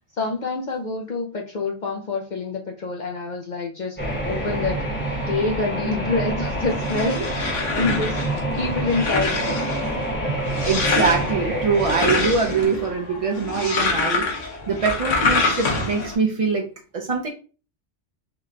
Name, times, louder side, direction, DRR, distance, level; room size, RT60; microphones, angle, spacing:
voice 1, 0.1-4.9 5.3-9.6, left 3 dB, 60° left, 0 dB, 0.5 m, -27 dB
sound 1, 4.0-12.6, right 1 dB, 10° left, 0.8 m, -27 dB
sound 2, 6.5-16.1, left 3 dB, 85° left, 1.2 m, -26 dB
voice 2, 10.4-16.6 16.9-17.3, right 5 dB, 65° right, 1 dB, 0.3 m, -23 dB
3.9 x 2.2 x 3.6 m, 0.37 s
omnidirectional pair, 1.2 m